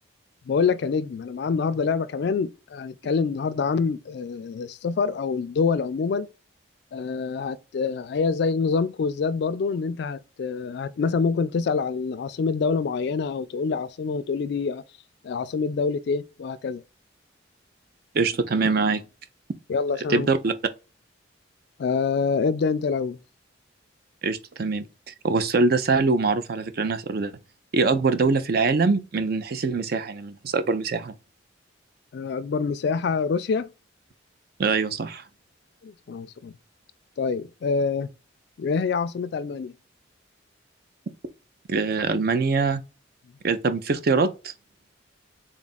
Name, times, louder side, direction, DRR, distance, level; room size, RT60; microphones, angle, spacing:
voice 1, 0.5-6.3 6.9-14.8 15.2-16.8 19.7-20.3 21.8-23.2 32.1-33.7 35.8-36.5 37.2-38.1 38.6-39.7, left 5 dB, 55° left, 0.3 m, -26 dB
voice 2, 18.1-19.0 20.1-20.5 24.2-27.3 27.7-31.1 34.6-35.2 41.7-42.8 43.4-44.5, right 4 dB, 50° right, 0.4 m, -23 dB
3.7 x 2.4 x 3.9 m
head